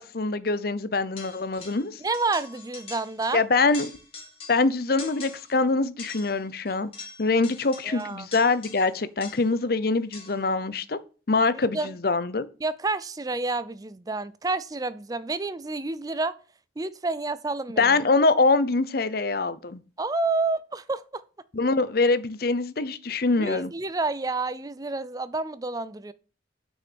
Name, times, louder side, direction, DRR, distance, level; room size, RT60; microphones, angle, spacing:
voice 1, 0.0-2.0 3.3-3.9 4.5-6.9 7.2-11.0 11.3-12.5 17.8-19.8 21.5-23.7, left 3 dB, 55° left, 0.7 m, -24 dB
sound 1, 1.2-3.4 3.7-4.7 5.0-5.6 6.0-9.6 10.1-10.5, left 4 dB, 30° left, 2.3 m, -44 dB
voice 2, 2.0-3.4 7.8-8.3 11.7-11.9 12.6-16.3 16.8-18.0 20.0-21.2 23.4-26.1, right 3 dB, 20° right, 0.4 m, -29 dB
6.4 x 6.3 x 6.1 m
head